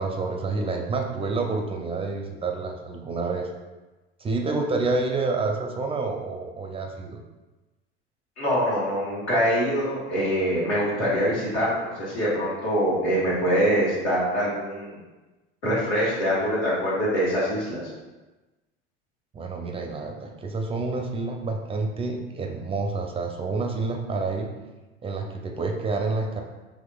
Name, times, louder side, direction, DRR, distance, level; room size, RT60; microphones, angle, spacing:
voice 1, 0.0-3.5 4.2-7.2 19.3-24.6 25.0-26.4, right 3 dB, 15° right, 2 dB, 0.4 m, -28 dB
voice 2, 8.4-15.0 15.6-17.8, equal, 85° left, -8 dB, 1.4 m, -24 dB
4.0 x 2.9 x 2.3 m, 1.1 s
hypercardioid pair, 80°, 34 cm